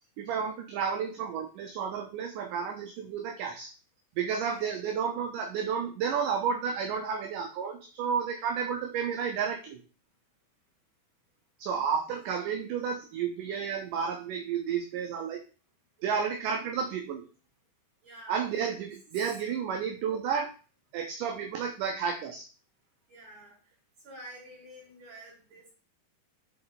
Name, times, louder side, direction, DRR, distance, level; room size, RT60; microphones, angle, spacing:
voice 1, 0.2-3.7 4.2-9.8 11.6-15.4 16.0-17.2 18.3-20.5 20.9-22.4, right 7 dB, 75° right, 2 dB, 2.1 m, -31 dB
voice 2, 18.0-18.4 19.5-19.6 23.1-23.6 24.0-25.7, right 1 dB, 30° right, -4 dB, 4.5 m, -48 dB
7.8 x 4.5 x 4.0 m, 0.36 s
omnidirectional pair, 4.4 m